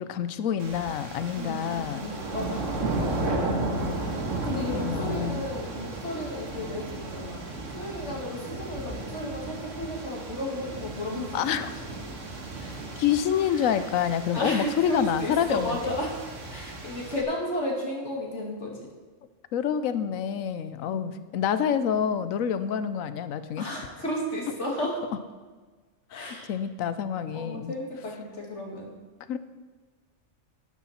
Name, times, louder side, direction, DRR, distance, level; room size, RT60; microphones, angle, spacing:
voice 1, 0.0-2.1 2.7-5.4 11.3-11.9 12.6-15.9 19.5-23.7 24.8-24.9 26.1-27.7 29.3-29.4, left 8 dB, 90° left, 12 dB, 1.1 m, -28 dB
sound 1, 0.6-17.2, right 2 dB, 65° right, 1.9 m, -34 dB
voice 2, 1.3-2.7 4.4-7.5 7.7-11.4 14.3-16.1 16.5-18.9 20.9-21.0 23.6-25.0 26.1-26.5 27.3-28.9, left 1 dB, 60° left, -2 dB, 2.5 m, -33 dB
12.5 x 11.0 x 4.3 m, 1.4 s
omnidirectional pair, 1.4 m